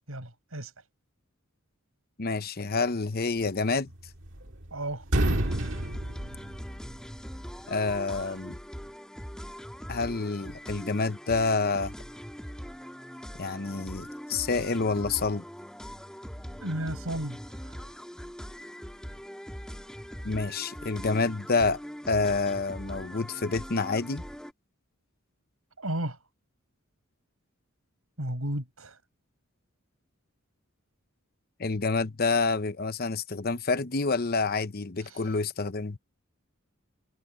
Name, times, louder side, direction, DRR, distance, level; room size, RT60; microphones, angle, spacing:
voice 1, 0.1-0.7 4.7-5.0 16.6-17.8 25.8-26.2 28.2-29.0, right 1 dB, 80° right, 7.2 m, -33 dB
voice 2, 2.2-3.9 7.7-8.6 9.9-11.9 13.4-15.4 20.2-21.8 22.1-24.2 31.6-36.0, left 4 dB, 45° left, 0.9 m, -28 dB
sound 1, 3.9-4.7 5.0-7.1, right 1 dB, 60° right, 2.1 m, -29 dB
sound 2, 5.3-24.5, equal, 5° left, 2.1 m, -42 dB
head